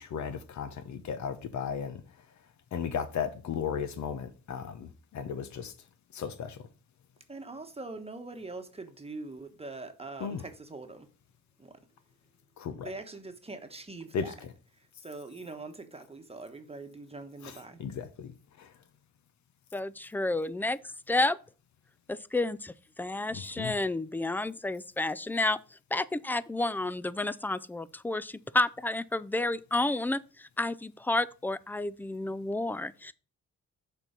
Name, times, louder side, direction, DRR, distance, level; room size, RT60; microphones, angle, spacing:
voice 1, 0.0-2.0 2.7-5.7 6.1-6.6 10.2-10.4 12.6-12.9 14.1-14.2 17.4-17.5 17.8-18.7 23.3-23.7, left 7 dB, 65° left, 1.0 m, -35 dB
voice 2, 7.3-11.1 11.6-11.7 12.8-13.2 13.5-14.3 15.0-17.8, right 3 dB, 20° right, 1.2 m, -43 dB
voice 3, 19.7-20.8 21.1-21.4 22.1-22.7 23.0-25.6 25.9-33.1, left 2 dB, 5° left, 0.4 m, -30 dB
6.9 x 4.5 x 5.2 m
cardioid pair, 85°, 31 cm